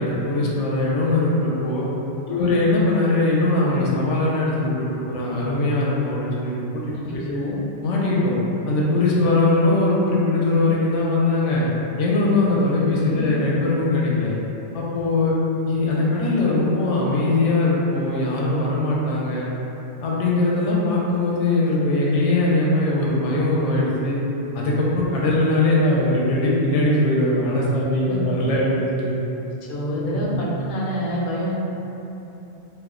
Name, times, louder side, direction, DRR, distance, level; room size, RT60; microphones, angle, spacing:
voice 1, 0.0-1.8 2.3-6.8 7.1-7.2 7.8-8.3 8.7-11.6 12.0-14.3 14.7-15.3 15.7-19.5 20.0-24.2 24.5-29.2 30.1-30.4, left 2 dB, 90° left, -5 dB, 0.9 m, -21 dB
voice 2, 6.9-7.6 13.1-13.3 28.1-28.3 29.7-31.6, equal, 55° left, -5 dB, 0.6 m, -27 dB
2.4 x 2.1 x 3.6 m, 3.0 s
omnidirectional pair, 1.2 m